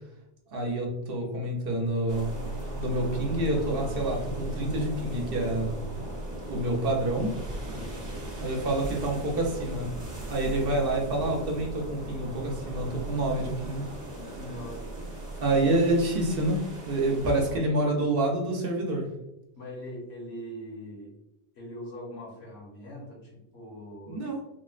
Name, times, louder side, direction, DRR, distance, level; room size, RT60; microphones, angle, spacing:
voice 1, 0.5-2.3 2.8-5.7 6.5-7.3 8.4-9.9 10.3-13.8 15.4-19.1 24.1-24.4, right 1 dB, 65° right, 0 dB, 0.8 m, -27 dB
sound 1, 2.1-17.6, right 1 dB, 25° right, 0.5 m, -37 dB
voice 2, 7.7-8.2 14.1-15.0 15.5-15.8 19.6-21.1 21.6-24.4, equal, 75° left, -2 dB, 1.2 m, -42 dB
3.7 x 2.0 x 2.3 m, 0.90 s
omnidirectional pair, 1.1 m